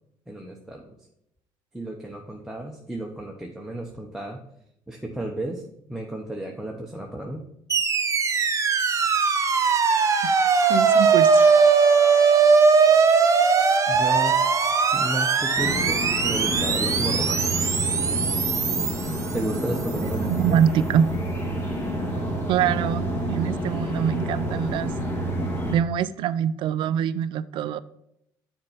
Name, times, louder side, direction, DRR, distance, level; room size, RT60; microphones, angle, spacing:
voice 1, 0.3-0.8 1.7-4.4 4.9-5.6 5.9-7.5 13.9-14.4 14.9-17.5 19.3-20.6, right 1 dB, 5° right, -1 dB, 0.9 m, -32 dB
sound 1, 7.7-19.9, right 5 dB, 35° right, 0.9 m, -20 dB
voice 2, 10.7-11.5 20.2-21.1 22.5-24.9 25.7-27.8, right 9 dB, 65° right, 16 dB, 0.4 m, -24 dB
sound 2, 15.5-25.8, right 1 dB, 25° left, 1.8 m, -29 dB
6.6 x 4.4 x 5.7 m, 0.78 s
supercardioid pair, 90°, 9 cm